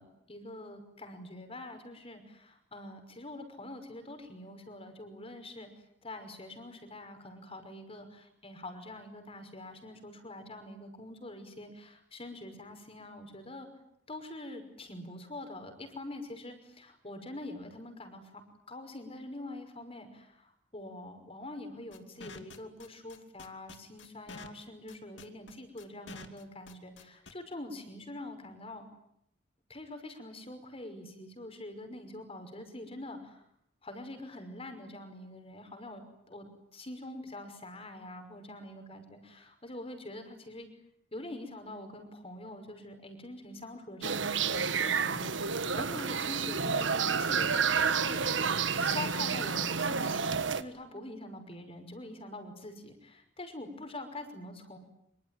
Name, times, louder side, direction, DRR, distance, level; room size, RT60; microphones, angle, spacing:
voice 1, 0.0-5.7 6.0-13.7 14.1-18.4 18.7-28.9 29.7-33.4 33.8-36.0 36.3-36.5 36.7-40.7 41.1-48.2 48.8-54.8, left 1 dB, 30° left, 7 dB, 5.7 m, -45 dB
sound 1, 21.9-27.3, left 3 dB, 70° left, 2.7 m, -48 dB
sound 2, 44.0-50.6, right 6 dB, 75° right, 1.5 m, -30 dB
26.0 x 24.5 x 9.3 m, 0.75 s
head